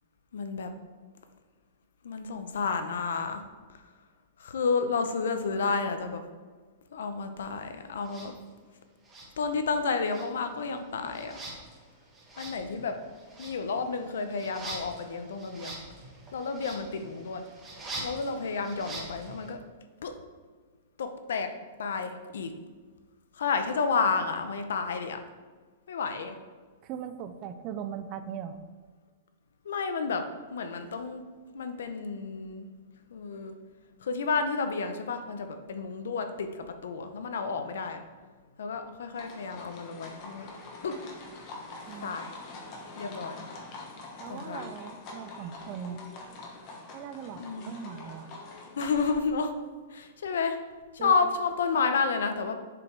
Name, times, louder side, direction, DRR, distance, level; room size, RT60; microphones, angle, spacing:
voice 1, 0.3-0.7 2.0-3.4 4.4-6.2 6.9-8.3 9.4-11.4 12.4-13.0 13.4-15.8 16.3-17.4 18.0-19.6 20.0-20.1 21.0-21.5 21.8-22.5 23.3-25.2 25.9-26.3 29.6-30.2 30.5-31.2 31.5-32.7 33.1-33.5 34.0-38.0 38.6-40.5 40.8-41.0 42.0-42.3 43.0-43.4 44.3-44.7 47.4-47.7 48.8-49.5 49.9-50.6 50.9-52.6, left 4 dB, 85° left, 7 dB, 0.9 m, -31 dB
sound 1, 8.0-8.3 9.0-9.8 10.0-19.5, right 2 dB, 10° right, 1.2 m, -44 dB
voice 2, 26.8-28.6 41.9-42.2 44.2-46.0 46.9-48.3 51.0-51.2, right 8 dB, 25° right, 10 dB, 0.4 m, -39 dB
sound 2, 39.1-49.1, left 3 dB, 25° left, 1.1 m, -45 dB
7.1 x 5.2 x 4.7 m, 1.5 s
supercardioid pair, 175°, 0 cm